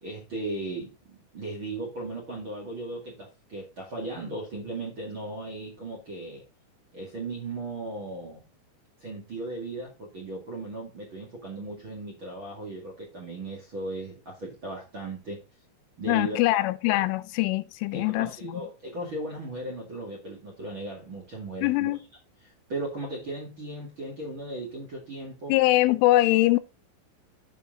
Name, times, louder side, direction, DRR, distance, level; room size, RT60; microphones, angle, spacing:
voice 1, 0.0-6.4 6.9-8.4 9.0-15.4 16.0-16.4 17.9-21.9 22.4-25.5, right 2 dB, 40° right, 1.9 m, -37 dB
voice 2, 16.1-18.6 21.6-22.0 25.5-26.6, left 17 dB, 85° left, 3.1 m, -23 dB
8.4 x 6.9 x 3.8 m
omnidirectional pair, 5.6 m